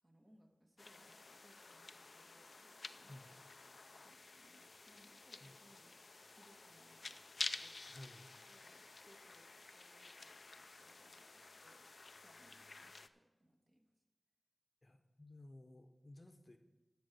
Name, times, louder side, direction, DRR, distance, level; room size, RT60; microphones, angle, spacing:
voice 1, 0.0-7.8 8.5-14.0, right 1 dB, 35° right, 1 dB, 1.7 m, -70 dB
sound 1, 0.8-13.1, left 3 dB, 70° left, 0.4 m, -51 dB
voice 2, 3.0-3.4 5.4-5.6 7.9-8.3 14.8-16.6, left 1 dB, 45° left, 6 dB, 0.9 m, -56 dB
13.5 x 4.7 x 8.2 m, 1.2 s
wide cardioid pair, 60°, 0 cm